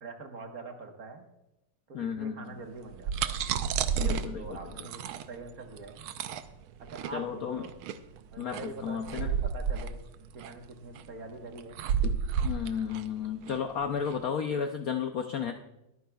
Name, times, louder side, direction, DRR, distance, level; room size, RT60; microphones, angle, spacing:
voice 1, 0.0-1.2 1.9-3.4 4.3-6.1 6.8-7.7 8.3-10.0 10.3-11.9, right 3 dB, 50° right, 4 dB, 1.6 m, -44 dB
voice 2, 1.9-2.6 4.0-4.6 7.1-7.6 8.4-9.3 12.0-12.1 12.4-15.6, left 7 dB, 65° left, 5 dB, 0.9 m, -33 dB
sound 1, 2.8-14.2, right 7 dB, 85° right, 1.5 m, -32 dB
22.0 x 9.5 x 2.3 m, 0.89 s
omnidirectional pair, 2.2 m